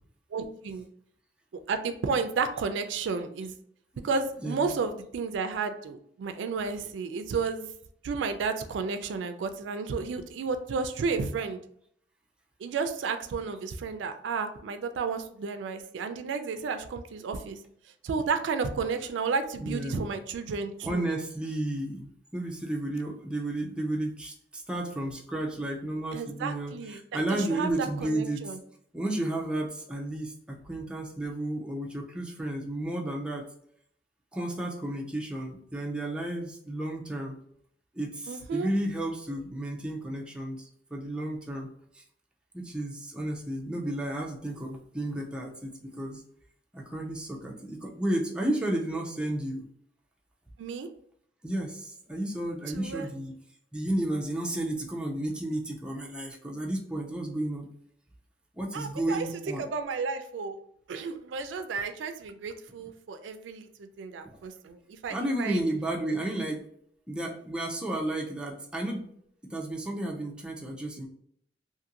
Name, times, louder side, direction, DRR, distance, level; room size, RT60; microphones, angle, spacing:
voice 1, 0.3-0.9 1.7-3.5 4.0-7.7 8.0-11.6 12.6-17.6 18.0-21.0 26.1-28.6 38.3-38.7 50.6-50.9 52.7-53.1 58.7-59.3 59.6-60.6 60.9-65.6, right 5 dB, 90° right, 8 dB, 0.3 m, -32 dB
voice 2, 4.4-4.7 19.6-20.1 20.8-28.6 28.9-33.5 34.3-37.4 37.9-41.7 41.9-42.0 42.5-46.2 46.7-49.6 51.4-53.3 53.7-57.7 58.5-59.6 64.3-64.4 65.1-66.6 67.1-69.1 69.5-71.1, right 1 dB, 5° right, -1 dB, 0.4 m, -32 dB
2.6 x 2.5 x 2.8 m, 0.68 s
head